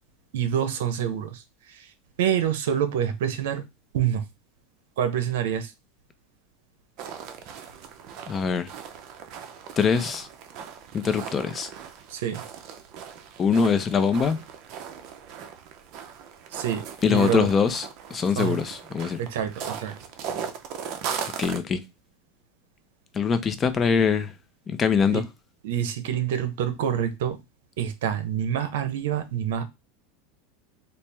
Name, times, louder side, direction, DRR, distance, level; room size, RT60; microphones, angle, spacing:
voice 1, 0.3-1.4 1.8-1.9 2.2-3.6 3.9-4.2 5.0-5.7 12.1-12.4 16.5-17.5 18.4-18.6 19.2-19.9 25.1-25.2 25.6-27.4 27.8-29.6, right 9 dB, 80° right, 0.7 m, -27 dB
sound 1, 7.0-21.6, right 7 dB, 45° right, 0.6 m, -38 dB
voice 2, 8.3-8.7 9.8-10.3 10.9-11.7 13.4-14.4 17.0-19.2 21.4-21.8 23.1-24.3 24.7-25.2, left 6 dB, 20° left, 0.4 m, -23 dB
4.4 x 2.0 x 3.3 m
supercardioid pair, 145°, 0 cm